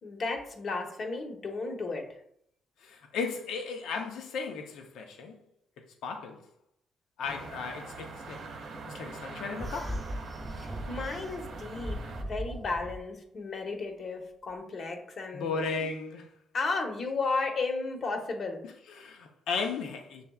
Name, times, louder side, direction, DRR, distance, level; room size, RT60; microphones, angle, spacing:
voice 1, 0.0-2.1 10.5-15.9 16.5-18.6, left 3 dB, 50° left, 0.9 m, -34 dB
voice 2, 2.8-5.4 6.0-6.4 7.2-8.4 8.9-10.0 15.3-16.3 18.6-20.2, left 5 dB, 80° left, 0.7 m, -35 dB
sound 1, 7.2-12.2, right 3 dB, 70° right, 0.7 m, -43 dB
sound 2, 9.6-13.0, equal, 15° right, 0.9 m, -38 dB
6.9 x 3.3 x 2.3 m
cardioid pair, 90°, 0 cm